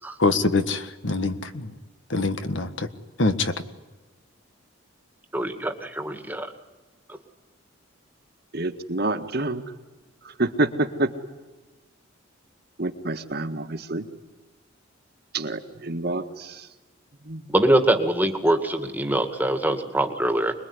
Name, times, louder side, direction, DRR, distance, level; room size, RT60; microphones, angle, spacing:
voice 1, 0.2-1.7 2.1-2.9 3.2-3.5, left 3 dB, 60° left, 9 dB, 1.7 m, -24 dB
voice 2, 5.3-6.5 17.5-20.5, right 1 dB, 10° right, 6 dB, 2.0 m, -23 dB
voice 3, 8.5-9.6 10.4-11.1 12.8-14.1 15.3-16.6 17.3-17.5, right 2 dB, 50° right, 6 dB, 1.8 m, -27 dB
26.0 x 21.5 x 9.8 m, 1.2 s
head